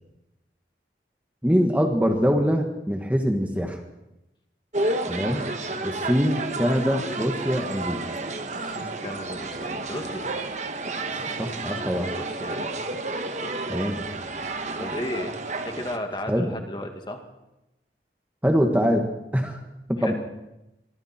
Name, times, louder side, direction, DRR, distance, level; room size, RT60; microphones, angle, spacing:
voice 1, 1.4-3.8 5.1-5.4 5.8-8.0 8.8-8.9 11.1-12.2 13.7-14.1 16.3-16.5 18.4-19.1 19.3-19.6 19.9-20.1, equal, 10° right, 3 dB, 1.7 m, -24 dB
sound 1, 4.7-16.0, right 2 dB, 40° right, 1.5 m, -31 dB
voice 2, 8.5-10.3 12.1-12.8 14.8-17.2 20.0-20.1, left 1 dB, 25° left, 4 dB, 2.3 m, -34 dB
25.0 x 23.5 x 4.5 m, 0.92 s
head